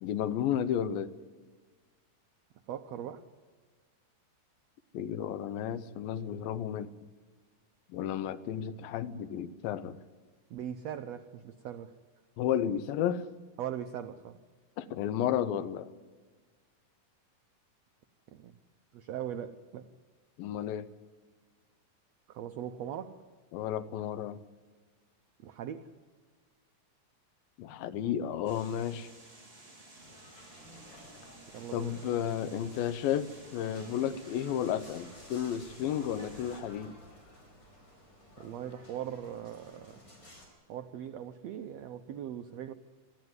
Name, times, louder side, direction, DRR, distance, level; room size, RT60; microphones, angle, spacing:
voice 1, 0.0-1.1 4.9-6.9 7.9-10.0 12.4-13.3 14.8-15.9 20.4-20.9 23.5-24.4 27.6-29.1 31.7-37.0, left 9 dB, 90° left, 15 dB, 2.6 m, -32 dB
voice 2, 2.7-3.2 10.5-11.9 13.6-14.4 18.3-18.5 18.9-19.9 22.3-23.2 25.4-25.9 31.5-32.0 38.4-40.0 40.7-42.7, right 10 dB, 90° right, 9 dB, 1.4 m, -40 dB
sound 1, 28.4-36.6, right 2 dB, 10° right, 3.6 m, -54 dB
sound 2, 30.0-40.5, left 1 dB, 30° left, 5.5 m, -54 dB
23.5 x 14.5 x 9.5 m, 1.4 s
omnidirectional pair, 4.0 m